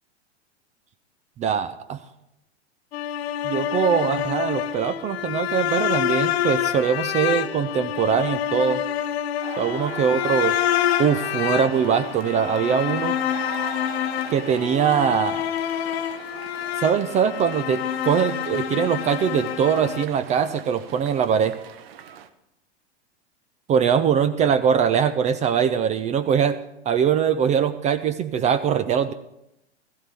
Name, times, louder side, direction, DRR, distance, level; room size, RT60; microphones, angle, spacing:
voice 1, 1.4-2.0 3.4-8.8 9.6-10.6 11.0-13.2 14.3-15.4 16.8-21.5 23.7-26.6 26.9-29.1, right 7 dB, 20° right, 13 dB, 0.4 m, -22 dB
sound 1, 2.9-20.1, left 11 dB, 65° left, 0.8 m, -27 dB
sound 2, 9.4-22.3, right 8 dB, 60° right, 1.1 m, -40 dB
15.5 x 14.0 x 3.5 m, 0.85 s
hypercardioid pair, 100°, 34 cm